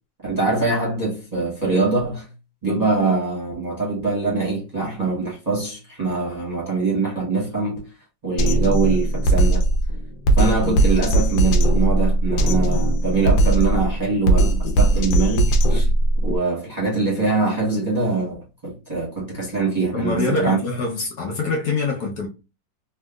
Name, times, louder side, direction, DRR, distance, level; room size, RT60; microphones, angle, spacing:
voice 1, 0.2-2.3 2.6-7.9 8.2-9.6 10.4-15.9 16.2-20.6, right 3 dB, 25° right, 0.9 m, -23 dB
Drum kit, 8.4-16.4, right 1 dB, 85° left, 1.4 m, -18 dB
voice 2, 19.9-22.3, left 3 dB, 65° left, 1.1 m, -24 dB
3.5 x 2.7 x 2.3 m
omnidirectional pair, 2.0 m